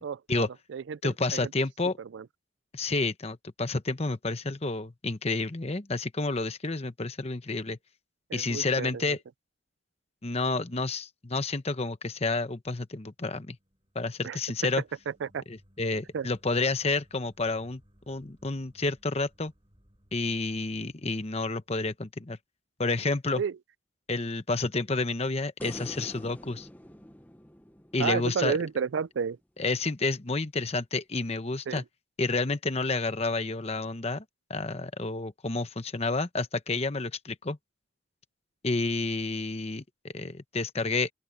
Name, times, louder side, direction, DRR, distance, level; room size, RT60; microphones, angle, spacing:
voice 1, 0.0-1.5 2.0-2.3 8.3-9.2 14.2-14.4 15.1-15.4 16.1-16.3 23.4-23.6 28.0-29.4 31.7-31.8, right 6 dB, 70° right, 0.4 m, -32 dB
voice 2, 1.0-2.0 2.7-7.8 8.3-9.2 10.2-13.6 13.9-14.8 15.5-17.8 18.1-19.5 20.1-22.4 22.8-23.4 24.1-26.7 27.9-28.6 29.6-31.8 32.2-34.2 34.5-37.6 38.6-41.1, left 3 dB, 35° left, 1.0 m, -30 dB
sound 1, 12.9-22.2, equal, 25° right, 6.3 m, -64 dB
sound 2, 25.6-28.9 31.8-31.9, equal, 10° left, 1.1 m, -45 dB
open air
head